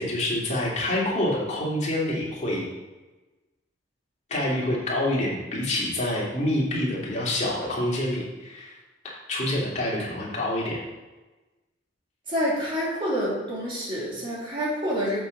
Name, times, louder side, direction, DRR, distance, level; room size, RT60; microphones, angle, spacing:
voice 1, 0.0-2.6 4.3-8.8 9.3-10.8, left 1 dB, 35° left, -5 dB, 2.6 m, -27 dB
voice 2, 12.3-15.2, equal, 25° right, -6 dB, 2.9 m, -27 dB
7.9 x 7.1 x 4.0 m, 1.2 s
head